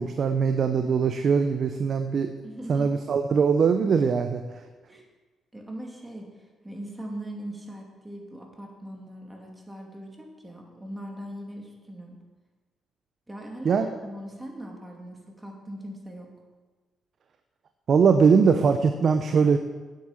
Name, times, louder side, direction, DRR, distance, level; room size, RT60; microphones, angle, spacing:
voice 1, 0.0-2.3 2.7-4.4 13.6-13.8 17.9-19.6, right 6 dB, 55° right, 7 dB, 0.8 m, -21 dB
voice 2, 2.4-2.9 4.9-5.1 5.5-6.3 6.6-12.2 13.3-16.3, right 1 dB, 10° right, 0 dB, 2.7 m, -40 dB
9.5 x 8.7 x 7.4 m, 1.3 s
cardioid pair, 90°, 0 cm